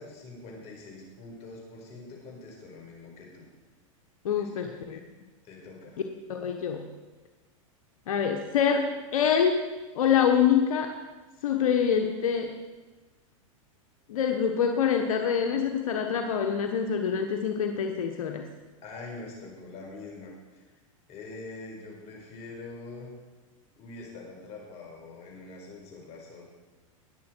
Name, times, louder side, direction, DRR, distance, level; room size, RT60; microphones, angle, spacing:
voice 1, 0.0-3.4 4.3-4.8 5.4-6.0 18.8-20.6 21.1-23.1 23.8-26.4, left 3 dB, 35° left, -1 dB, 4.7 m, -44 dB
voice 2, 4.2-5.0 6.3-6.9 8.1-9.7 9.9-10.9 11.4-12.6 14.1-18.5, left 7 dB, 80° left, 4 dB, 1.2 m, -25 dB
20.0 x 7.4 x 4.6 m, 1.2 s
hypercardioid pair, 125°, 17 cm